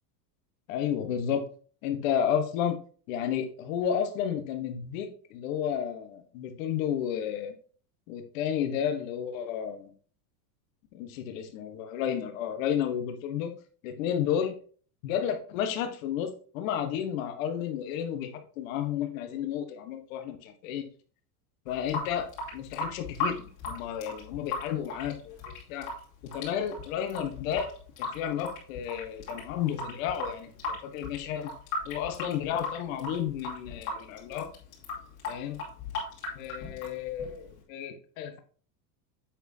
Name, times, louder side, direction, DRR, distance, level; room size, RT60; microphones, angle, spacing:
voice 1, 0.7-1.4 1.8-2.8 3.1-7.5 8.1-9.9 10.9-13.5 13.8-14.5 15.0-20.9 21.6-25.9 26.2-27.7 28.0-31.5 31.9-34.5 35.3-35.6 36.3-38.4, left 9 dB, 50° left, 7 dB, 1.3 m, -32 dB
Water tap faucet / Sink (filling or washing) / Drip, 21.7-37.6, left 3 dB, 35° left, 2.8 m, -37 dB
8.0 x 6.2 x 2.8 m, 0.42 s
supercardioid pair, 180°, 50 cm